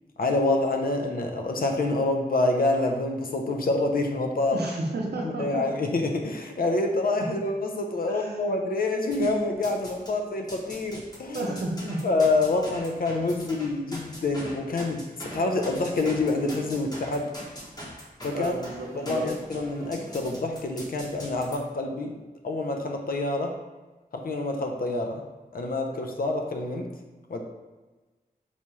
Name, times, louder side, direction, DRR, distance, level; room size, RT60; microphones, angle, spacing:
voice 1, 0.2-4.6 5.2-11.5 12.0-17.3 18.2-18.5 18.9-22.1 22.4-23.5 24.1-25.2 25.5-26.9 27.3-27.4, left 2 dB, 60° left, 3 dB, 0.5 m, -27 dB
voice 2, 4.5-5.7 7.2-7.3 8.1-8.4 10.1-10.2 11.3-12.0 18.3-19.4, right 2 dB, 85° right, 0 dB, 0.6 m, -32 dB
sound 1, 9.1-10.1 10.5-21.6, equal, 25° left, 0.9 m, -42 dB
4.2 x 2.3 x 3.0 m, 1.2 s
cardioid pair, 60°, 17 cm